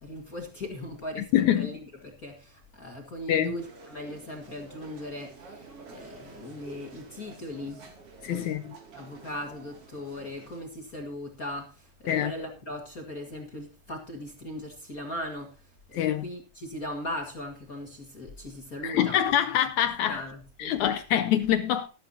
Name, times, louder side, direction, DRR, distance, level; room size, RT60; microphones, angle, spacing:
voice 1, 0.0-7.9 8.2-8.6 8.9-19.3 20.0-20.8, left 1 dB, 35° left, 1.6 m, -39 dB
voice 2, 1.3-1.7 3.3-3.5 8.2-8.7 12.1-12.3 15.9-16.3 18.8-20.2 20.6-21.9, left 11 dB, 80° left, 1.7 m, -25 dB
sound 1, 3.6-10.6, right 5 dB, 45° right, 3.1 m, -49 dB
14.0 x 13.0 x 2.8 m
omnidirectional pair, 4.1 m